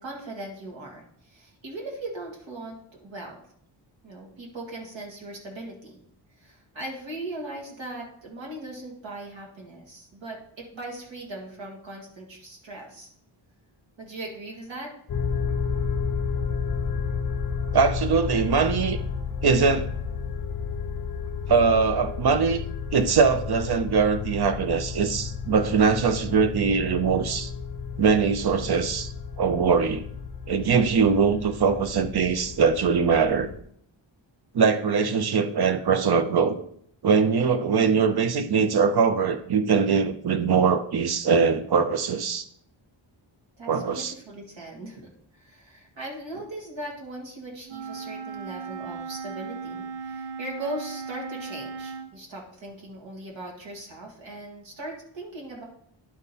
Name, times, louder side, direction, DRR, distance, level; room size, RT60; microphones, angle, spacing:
voice 1, 0.0-3.4 4.0-6.0 6.4-13.1 14.0-14.9 43.6-55.6, right 1 dB, 70° right, -2 dB, 1.8 m, -39 dB
sound 1, 15.1-33.6, left 5 dB, 40° left, 0.6 m, -32 dB
voice 2, 17.7-19.0 19.4-19.9 21.5-22.7 22.9-27.5 28.0-30.0 30.5-33.5 34.5-36.6 37.0-42.4 43.7-44.1, right 5 dB, 50° right, 10 dB, 0.7 m, -22 dB
Wind instrument woodwind instrument, 47.7-52.1, right 5 dB, 85° right, 0.7 m, -37 dB
11.0 x 3.7 x 4.1 m, 0.65 s
wide cardioid pair, 125°, 48 cm